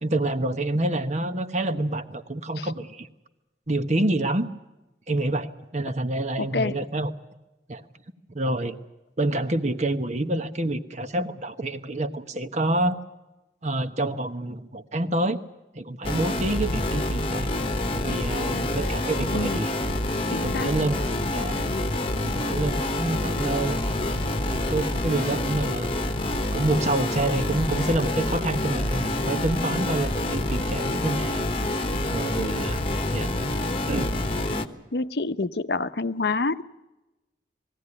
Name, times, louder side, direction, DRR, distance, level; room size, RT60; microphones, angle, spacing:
voice 1, 0.0-3.1 3.7-4.5 5.1-7.1 7.7-7.8 8.3-8.8 9.2-12.9 13.6-15.4 15.7-17.5 17.9-19.7 20.3-21.0 21.3-21.6 22.2-23.8 24.4-25.9 26.5-31.5 32.1-32.8 33.1-33.3 33.9-34.1, right 1 dB, 40° right, 9 dB, 1.1 m, -27 dB
voice 2, 6.4-6.7 19.3-19.6 20.3-20.7 32.4-32.7 34.9-36.6, left 3 dB, 65° left, 12 dB, 0.8 m, -27 dB
sound 1, 16.0-34.7, left 1 dB, 30° left, 1.2 m, -27 dB
20.5 x 16.0 x 9.8 m, 1.0 s
head